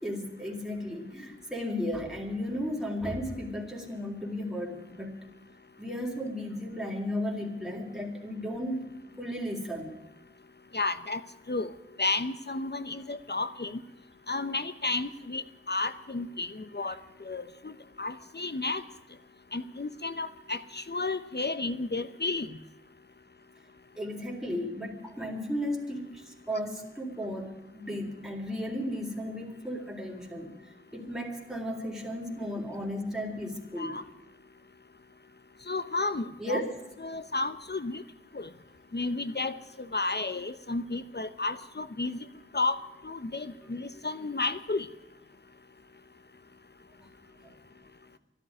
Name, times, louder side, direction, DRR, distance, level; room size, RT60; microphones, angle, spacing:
voice 1, 0.0-5.1 5.8-8.8 9.2-9.9 24.0-30.5 30.9-34.0 36.4-36.7 47.0-47.1, equal, ahead, -1 dB, 4.1 m, -34 dB
voice 2, 10.7-11.2 11.5-11.7 12.0-13.8 14.3-17.0 17.2-17.7 18.0-18.8 19.5-22.5 33.8-34.0 35.7-36.6 37.0-38.0 38.3-38.5 38.9-39.5 39.9-42.2 42.5-42.8 43.0-44.9, left 3 dB, 55° left, 12 dB, 1.0 m, -32 dB
12.0 x 12.0 x 9.7 m, 0.99 s
wide cardioid pair, 40°, 21 cm